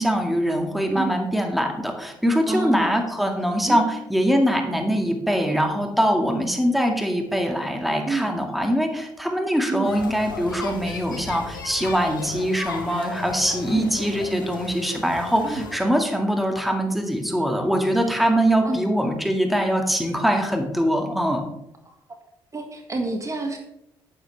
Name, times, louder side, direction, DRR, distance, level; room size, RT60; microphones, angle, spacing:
voice 1, 0.0-21.5, equal, ahead, 3 dB, 2.0 m, -23 dB
voice 2, 2.5-3.0 3.7-3.8 5.5-5.6 8.1-8.3 9.7-10.0 13.7-13.9 15.4-15.7 18.6-18.9 22.5-23.6, right 3 dB, 30° right, 3 dB, 1.8 m, -28 dB
sound 1, 9.8-15.8, left 4 dB, 85° left, 1.1 m, -36 dB
9.9 x 9.3 x 3.4 m, 0.83 s
hypercardioid pair, 45°, 11 cm